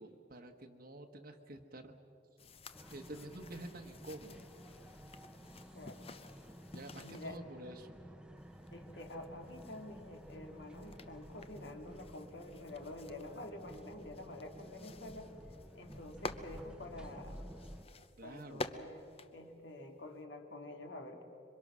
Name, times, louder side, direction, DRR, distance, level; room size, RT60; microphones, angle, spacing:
voice 1, 0.0-1.9 2.9-4.5 6.7-7.9 18.2-18.7, right 1 dB, 55° right, 4 dB, 1.2 m, -49 dB
sound 1, 2.4-7.4 8.4-20.2, left 3 dB, 30° left, 0.7 m, -51 dB
sound 2, 2.7-17.8, equal, 5° right, 0.9 m, -53 dB
voice 2, 5.7-6.1 7.0-7.4 8.7-15.3 15.7-17.4 18.2-19.1 19.3-21.2, left 1 dB, 75° left, 4 dB, 2.4 m, -48 dB
26.5 x 23.5 x 6.2 m, 2.8 s
head